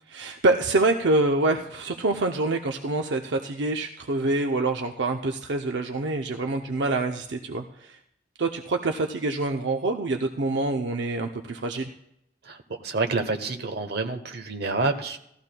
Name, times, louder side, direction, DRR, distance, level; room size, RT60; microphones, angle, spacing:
voice 1, 0.1-8.0 8.4-11.9, right 2 dB, 80° right, 4 dB, 0.6 m, -26 dB
voice 2, 12.4-15.2, right 3 dB, 65° right, 7 dB, 1.0 m, -28 dB
17.0 x 13.5 x 2.2 m, 0.77 s
head